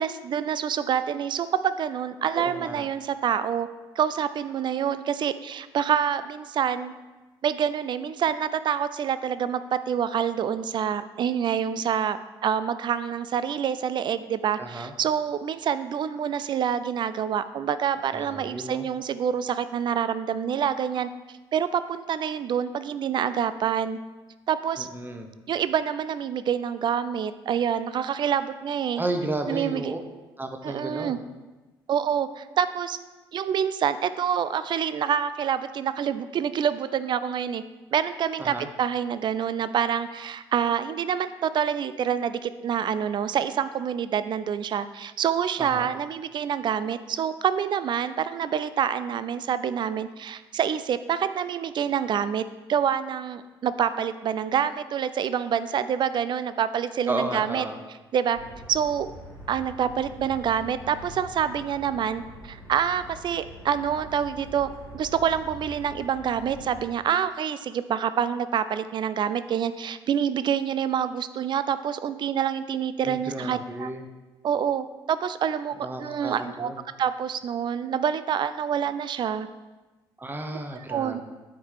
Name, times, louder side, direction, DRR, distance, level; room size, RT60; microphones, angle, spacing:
voice 1, 0.0-3.7 4.0-6.9 7.4-21.1 21.5-24.0 24.5-24.9 25.5-29.0 29.5-29.9 30.6-31.2 31.9-33.0 33.3-37.6 37.9-52.4 52.7-57.7 58.1-58.4 58.7-59.1 59.5-73.9 74.4-76.7 77.0-79.5 80.9-81.2, right 8 dB, 40° right, 13 dB, 0.4 m, -27 dB
voice 2, 2.3-2.9 14.6-14.9 18.1-18.9 24.8-25.3 29.0-30.0 30.4-31.2 38.4-38.7 45.6-45.9 57.1-57.8 73.0-74.1 75.8-76.8 80.2-81.2, right 2 dB, 15° right, 5 dB, 1.0 m, -33 dB
sound 1, 58.3-66.8, right 1 dB, 85° right, 1.8 m, -44 dB
8.6 x 4.7 x 4.7 m, 1.2 s
figure-of-eight pair, 45°, 12 cm